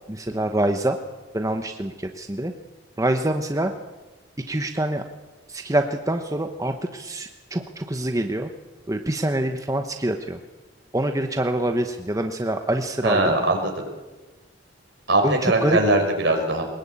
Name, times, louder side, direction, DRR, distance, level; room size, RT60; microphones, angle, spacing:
voice 1, 0.1-1.0 1.3-2.5 3.0-3.7 4.5-5.0 5.5-8.5 8.9-10.4 10.9-13.4 15.2-15.8, right 1 dB, 15° right, 5 dB, 1.1 m, -25 dB
voice 2, 13.0-13.9 15.1-16.7, right 2 dB, 65° right, 3 dB, 5.7 m, -21 dB
22.5 x 20.5 x 8.8 m, 1.2 s
head